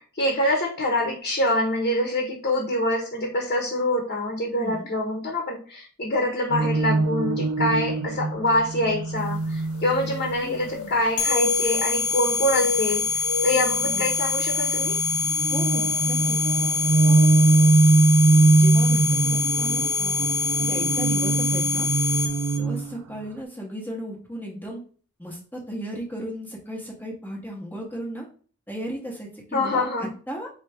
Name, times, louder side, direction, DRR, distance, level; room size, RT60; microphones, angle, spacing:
voice 1, 0.0-15.0 29.5-30.1, left 1 dB, 45° left, 0 dB, 0.9 m, -25 dB
voice 2, 4.6-4.9 10.4-10.9 13.5-14.0 15.5-16.4 17.0-17.4 18.5-20.3 20.6-21.9 22.6-24.8 25.2-28.3 28.7-29.8 30.3-30.5, equal, 10° left, -2 dB, 0.8 m, -35 dB
sound 1, 6.5-10.7 13.7-23.0, right 3 dB, 75° right, 0.4 m, -22 dB
sound 2, 9.3-9.4 9.7-11.0 11.2-12.1 12.4-14.6 15.0-15.1 15.8-16.0 17.1-17.2 17.5-17.6, left 5 dB, 65° left, 0.4 m, -31 dB
sound 3, 11.2-22.6, left 4 dB, 85° left, 1.0 m, -25 dB
4.3 x 3.3 x 3.3 m, 0.41 s
head